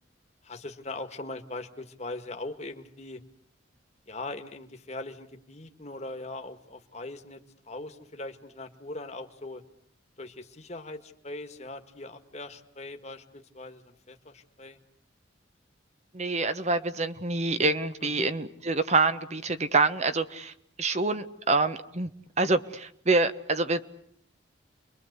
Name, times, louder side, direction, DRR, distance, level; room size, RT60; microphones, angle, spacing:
voice 1, 0.4-3.2 4.1-9.6 10.2-14.8 18.0-18.3, left 2 dB, 35° left, 6 dB, 1.9 m, -40 dB
voice 2, 16.1-20.5 20.8-22.1 22.4-23.8, right 3 dB, 35° right, 11 dB, 1.2 m, -26 dB
30.0 x 23.5 x 8.2 m, 0.69 s
head